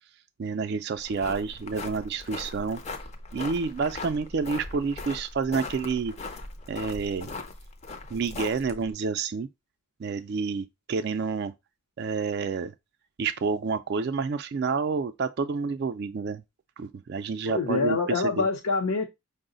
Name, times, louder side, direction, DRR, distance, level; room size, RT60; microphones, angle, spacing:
voice 1, 0.4-2.8 3.3-6.1 6.7-7.3 8.1-9.5 10.0-11.5 12.0-12.7 13.2-16.4 16.8-18.5, right 5 dB, 45° right, 0.3 m, -29 dB
sound 1, 1.0-8.9, left 3 dB, 30° left, 0.4 m, -39 dB
voice 2, 17.5-19.1, left 4 dB, 80° left, 0.6 m, -26 dB
5.4 x 2.0 x 3.8 m
head